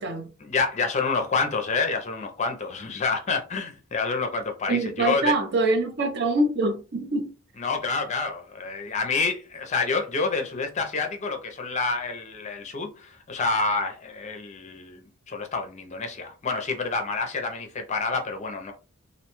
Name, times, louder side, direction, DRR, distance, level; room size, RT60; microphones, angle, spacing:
voice 1, 0.4-5.3 7.6-18.7, left 4 dB, 35° left, 0.5 m, -28 dB
voice 2, 4.7-7.3, right 2 dB, 50° right, 0.6 m, -24 dB
2.5 x 2.2 x 2.9 m
head